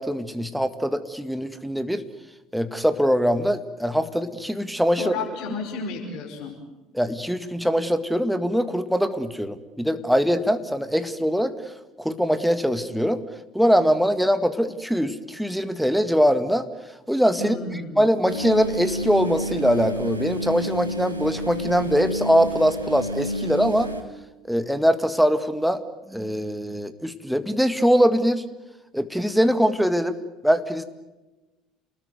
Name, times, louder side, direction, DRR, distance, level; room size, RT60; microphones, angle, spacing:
voice 1, 0.0-2.0 2.5-5.1 6.9-11.5 12.0-13.2 13.5-16.7 17.1-17.5 18.0-23.9 24.5-25.8 26.1-28.4 28.9-30.2 30.4-30.8, equal, ahead, 10 dB, 1.9 m, -22 dB
voice 2, 4.9-6.5 17.4-18.0, left 4 dB, 55° left, 3 dB, 5.1 m, -32 dB
sound 1, 18.3-24.0, equal, 90° right, 2.0 m, -30 dB
28.5 x 20.5 x 9.4 m, 1.1 s
figure-of-eight pair, 60°, 0 cm